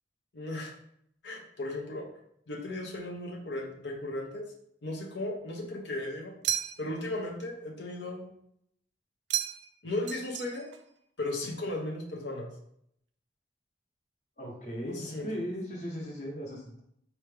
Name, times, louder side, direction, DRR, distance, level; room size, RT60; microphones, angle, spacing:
voice 1, 0.3-0.7 1.2-2.1 2.5-4.5 4.8-6.3 6.8-8.3 9.8-10.7 11.2-12.5 14.9-15.4, left 2 dB, 65° left, -1 dB, 0.9 m, -36 dB
sound 1, 6.4-7.1 9.3-9.8 10.1-10.8, right 10 dB, 65° right, 0.3 m, -33 dB
voice 2, 14.4-16.8, equal, 35° left, -3 dB, 1.2 m, -37 dB
4.6 x 3.0 x 3.3 m, 0.71 s
head